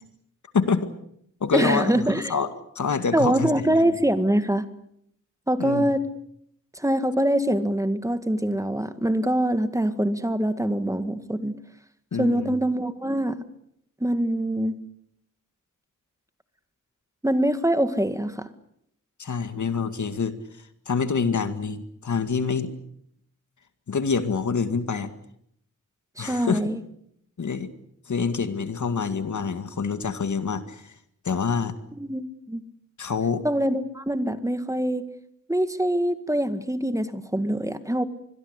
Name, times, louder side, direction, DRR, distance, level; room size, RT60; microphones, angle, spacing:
voice 1, 0.5-0.9 1.4-2.0 2.3-2.5 2.8-3.5 3.8-3.9 5.6-5.9 12.1-12.6 19.2-20.4 20.9-22.7 23.9-25.1 26.2-26.6 27.4-27.7 28.1-30.9 31.2-31.7 33.0-33.4, left 5 dB, 70° left, 10 dB, 2.1 m, -26 dB
voice 2, 1.5-2.3 3.1-4.7 5.5-6.0 6.8-11.6 12.2-13.4 14.0-14.8 17.2-18.5 26.2-26.8 32.0-32.6 33.4-35.0 35.5-38.1, right 1 dB, 10° right, 10 dB, 1.8 m, -24 dB
25.5 x 22.0 x 8.2 m, 0.72 s
wide cardioid pair, 95°, 31 cm